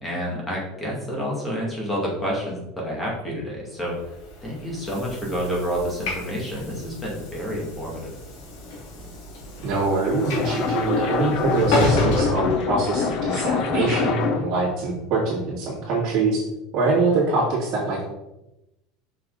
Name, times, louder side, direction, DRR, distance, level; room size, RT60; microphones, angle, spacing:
voice 1, 0.0-3.9 4.4-8.1, equal, 10° left, -3 dB, 2.3 m, -29 dB
Train / Sliding door, 4.0-13.3, left 2 dB, 65° left, 2.7 m, -30 dB
voice 2, 9.6-16.4 16.7-18.0, right 3 dB, 40° right, -10 dB, 2.5 m, -24 dB
sound 1, 9.7-14.6, left 5 dB, 40° left, 0.8 m, -25 dB
6.6 x 5.8 x 4.0 m, 0.93 s
cardioid pair, 165°, 0 cm